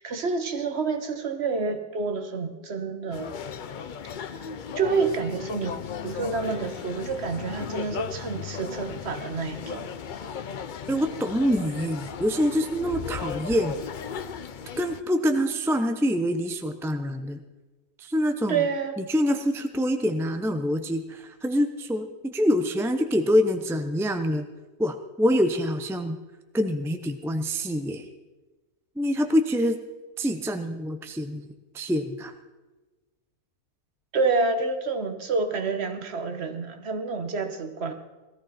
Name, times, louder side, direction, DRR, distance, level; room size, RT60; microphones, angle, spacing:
voice 1, 0.0-3.3 4.3-4.4 4.8-9.9 18.5-18.9 34.1-37.9, right 4 dB, 45° right, 8 dB, 1.4 m, -28 dB
sound 1, 3.1-15.0, left 7 dB, 70° left, 0.4 m, -36 dB
voice 2, 10.9-13.8 14.8-17.4 18.0-18.6 19.0-24.5 24.8-26.2 26.5-28.1 29.0-29.8 30.2-31.4 31.7-32.3, equal, 5° right, 7 dB, 0.4 m, -25 dB
18.5 x 14.0 x 4.3 m, 1.2 s
omnidirectional pair, 1.6 m